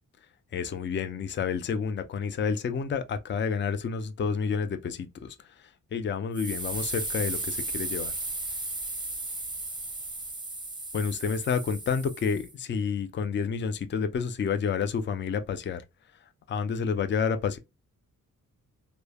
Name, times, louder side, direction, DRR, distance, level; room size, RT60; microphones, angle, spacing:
voice 1, 0.5-5.4 5.9-8.1 10.9-15.8 16.5-17.6, left 6 dB, 35° left, 0.4 m, -29 dB
sound 1, 6.3-12.5, right 2 dB, 15° right, 0.6 m, -35 dB
3.2 x 2.0 x 2.2 m
cardioid pair, 70°, 34 cm